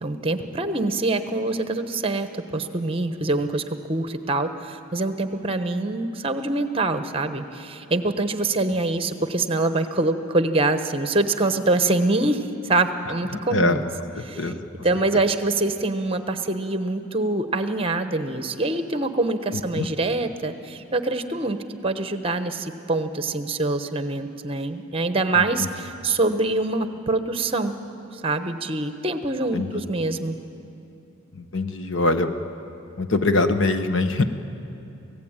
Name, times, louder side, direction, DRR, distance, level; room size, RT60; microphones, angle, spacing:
voice 1, 0.0-13.9 14.2-14.5 14.8-27.7 28.1-30.3, right 2 dB, 25° right, 9 dB, 1.0 m, -25 dB
voice 2, 14.2-14.6 19.7-19.9 29.5-29.7 31.5-32.3 33.0-34.3, left 2 dB, 55° left, 8 dB, 1.1 m, -22 dB
28.5 x 16.0 x 8.9 m, 2.8 s
head